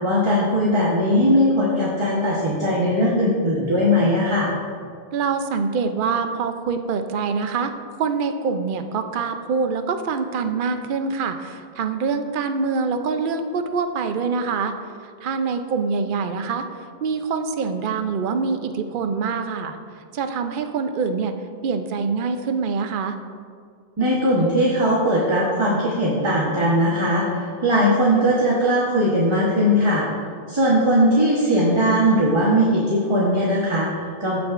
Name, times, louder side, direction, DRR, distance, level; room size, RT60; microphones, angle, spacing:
voice 1, 0.0-4.5 24.0-30.0 30.5-34.4, equal, 30° right, -5 dB, 1.1 m, -19 dB
voice 2, 5.1-7.7 8.0-14.7 15.2-16.7 17.0-19.8 20.1-21.3 21.6-23.2, right 5 dB, 60° right, 7 dB, 0.7 m, -25 dB
14.0 x 6.0 x 2.5 m, 2.2 s
omnidirectional pair, 1.0 m